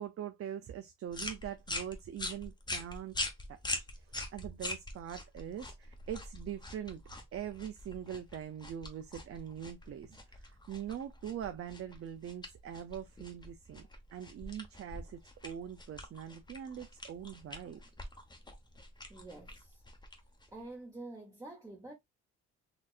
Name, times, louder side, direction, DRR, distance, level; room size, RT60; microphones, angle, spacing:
voice 1, 0.0-3.2 3.5-7.0 7.3-17.8, right 9 dB, 50° right, 0.6 m, -43 dB
sound 1, 1.1-20.7, left 2 dB, 15° left, 1.1 m, -44 dB
voice 2, 19.1-19.8 20.5-21.9, right 2 dB, 10° right, 1.2 m, -47 dB
4.2 x 2.8 x 2.5 m
cardioid pair, 90°, 30 cm